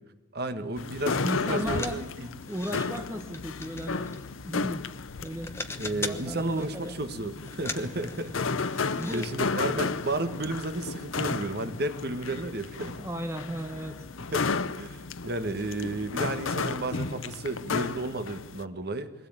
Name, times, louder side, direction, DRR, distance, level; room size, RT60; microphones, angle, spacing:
voice 1, 0.3-2.3 2.7-2.8 5.7-13.0 14.3-19.1, right 2 dB, 50° right, 9 dB, 1.4 m, -33 dB
sound 1, 0.8-18.6, left 4 dB, 85° left, 0.8 m, -33 dB
voice 2, 1.2-2.0 2.5-4.8 5.2-5.5 6.0-6.9 9.0-9.3 13.0-14.1, equal, 15° right, 6 dB, 1.1 m, -35 dB
sound 2, 1.7-2.8 3.3-5.0 5.3-6.3 6.6-7.0 7.4-9.3 9.6-9.7 10.0-10.1, left 3 dB, 15° left, 1.0 m, -40 dB
22.0 x 17.0 x 8.9 m, 1.1 s
head